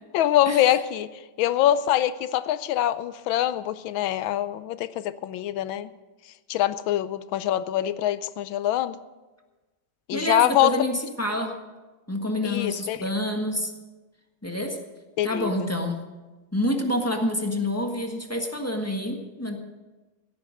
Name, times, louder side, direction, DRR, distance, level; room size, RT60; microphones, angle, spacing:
voice 1, 0.1-1.1 1.4-5.9 6.5-9.0 10.1-10.7 12.4-13.1 15.2-15.7, left 12 dB, 80° left, 15 dB, 1.4 m, -24 dB
voice 2, 10.1-11.6 12.1-13.7 14.4-14.8 15.2-16.1 16.5-19.6, left 1 dB, 10° left, 3 dB, 1.1 m, -27 dB
16.5 x 9.7 x 6.4 m, 1.2 s
omnidirectional pair, 2.2 m